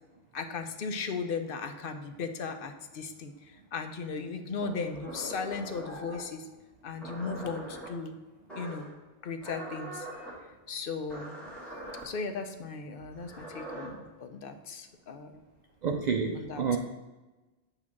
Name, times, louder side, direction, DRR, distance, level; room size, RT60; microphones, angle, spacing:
voice 1, 0.3-6.4 6.8-8.1 8.5-8.9 9.2-10.1 10.7-11.4 12.0-15.4 16.3-16.8, left 4 dB, 60° left, 7 dB, 0.8 m, -37 dB
sound 1, 4.6-6.3 7.0-7.9 8.5-8.9 9.4-10.3 11.1-12.0 13.1-13.9, right 1 dB, ahead, 1.7 m, -42 dB
voice 2, 15.8-16.8, right 6 dB, 55° right, 3 dB, 0.5 m, -29 dB
8.5 x 2.9 x 5.8 m, 1.1 s
omnidirectional pair, 1.1 m